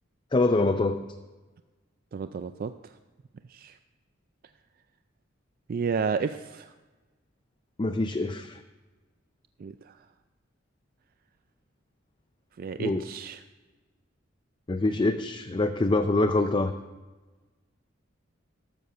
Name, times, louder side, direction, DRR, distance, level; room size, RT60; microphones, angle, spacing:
voice 1, 0.3-1.0 7.8-8.6 12.8-13.0 14.7-16.7, left 2 dB, 25° left, 7 dB, 0.4 m, -25 dB
voice 2, 2.1-2.9 3.5-3.8 5.7-6.7 9.6-10.0 12.6-13.4, right 5 dB, 45° right, 10 dB, 0.3 m, -32 dB
12.5 x 6.9 x 6.5 m, 1.2 s
head